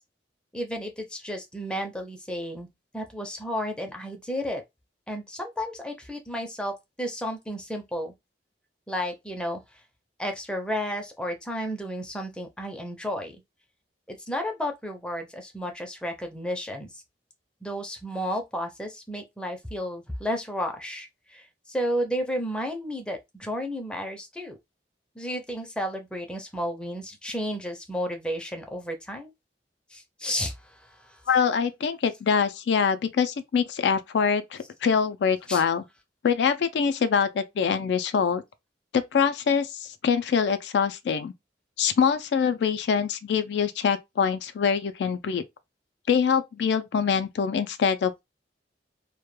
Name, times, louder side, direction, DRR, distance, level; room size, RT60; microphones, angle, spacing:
voice 1, 0.5-2.7 2.9-4.6 5.1-8.1 8.9-9.6 10.2-13.4 14.1-16.9 17.6-24.6 25.2-29.3 29.9-31.4 35.5-35.7, equal, 5° left, 0.5 m, -32 dB
voice 2, 31.3-35.8 36.2-38.4 38.9-41.3 41.8-45.4 46.1-48.2, left 6 dB, 70° left, 0.3 m, -24 dB
2.2 x 2.1 x 3.0 m
head